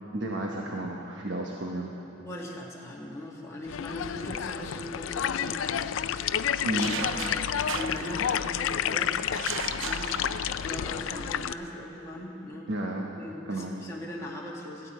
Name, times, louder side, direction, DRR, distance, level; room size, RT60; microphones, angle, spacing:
voice 1, 0.1-1.9 6.6-6.9 12.7-13.1 13.5-13.7, right 1 dB, 65° right, -1 dB, 1.1 m, -32 dB
voice 2, 2.2-6.5 7.0-7.3 7.7-9.2 9.8-10.1 10.6-12.7 13.1-14.9, left 1 dB, 15° left, -4 dB, 1.8 m, -40 dB
sound 1, 3.7-11.5, left 9 dB, 90° left, 0.4 m, -30 dB
sound 2, 6.8-8.8 9.3-10.9, right 8 dB, 85° right, 0.5 m, -37 dB
17.5 x 15.0 x 4.4 m, 2.9 s
head